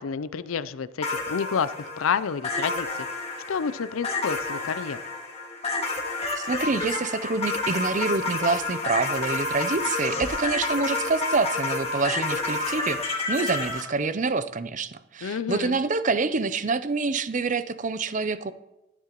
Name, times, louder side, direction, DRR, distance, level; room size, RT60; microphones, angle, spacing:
voice 1, 0.0-2.9 3.5-5.0 15.2-15.8, left 6 dB, 80° left, 15 dB, 0.5 m, -29 dB
sound 1, 1.0-13.8, left 3 dB, 30° left, 1.6 m, -29 dB
voice 2, 6.4-18.5, right 4 dB, 35° right, 13 dB, 0.5 m, -27 dB
14.0 x 10.0 x 3.0 m, 0.95 s
head